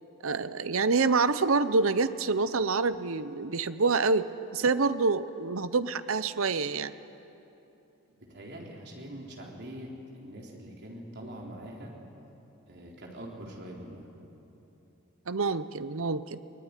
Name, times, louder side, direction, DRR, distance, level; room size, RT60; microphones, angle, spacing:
voice 1, 0.2-6.9 15.3-16.4, right 4 dB, 70° right, 14 dB, 0.8 m, -27 dB
voice 2, 8.2-11.9 12.7-14.1, right 1 dB, 55° right, -1 dB, 4.1 m, -43 dB
22.5 x 19.5 x 9.9 m, 3.0 s
head